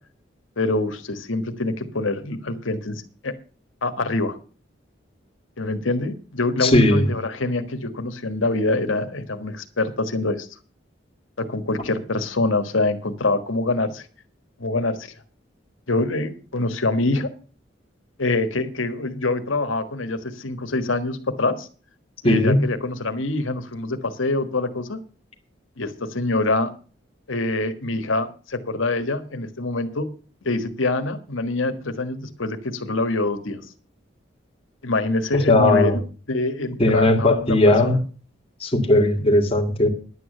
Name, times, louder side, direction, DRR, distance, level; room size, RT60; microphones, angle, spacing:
voice 1, 0.6-3.3 3.8-4.4 5.6-10.5 11.4-14.1 14.6-15.1 15.9-17.3 18.2-21.7 22.2-25.0 25.8-26.7 27.3-30.1 30.4-33.6 34.8-36.0 36.3-38.0 39.2-39.3, left 2 dB, 90° left, 9 dB, 1.5 m, -25 dB
voice 2, 6.6-7.1 22.2-22.7 35.5-36.0 36.8-38.0 38.6-39.9, left 1 dB, 30° left, 4 dB, 1.9 m, -17 dB
11.0 x 8.6 x 6.7 m, 0.39 s
head